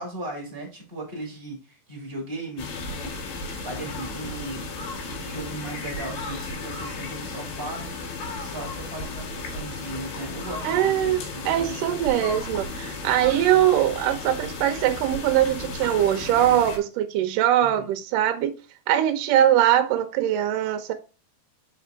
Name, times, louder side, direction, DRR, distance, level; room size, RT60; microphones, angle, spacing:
voice 1, 0.0-7.9 8.3-11.8 17.6-17.9, right 2 dB, 20° right, 1.7 m, -37 dB
sound 1, 2.6-16.8, left 3 dB, 75° left, 3.5 m, -34 dB
voice 2, 10.6-11.2 11.5-18.6 18.9-20.9, right 11 dB, 75° right, 2.2 m, -22 dB
5.6 x 5.1 x 3.5 m
omnidirectional pair, 4.5 m